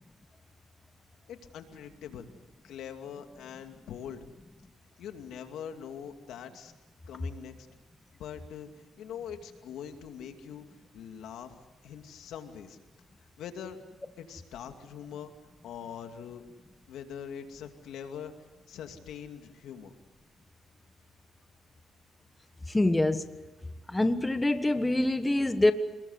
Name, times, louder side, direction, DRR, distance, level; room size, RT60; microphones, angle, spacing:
voice 1, 1.3-2.3 2.6-4.2 5.0-6.7 7.1-7.7 8.1-8.7 9.0-10.7 10.9-12.8 13.4-13.8 14.2-15.3 15.6-16.4 16.9-18.3 18.7-19.9, left 8 dB, 80° left, 2.6 m, -43 dB
voice 2, 22.7-23.3 23.9-25.7, left 2 dB, 15° left, 1.4 m, -25 dB
27.5 x 21.0 x 8.2 m
cardioid pair, 90°, 0 cm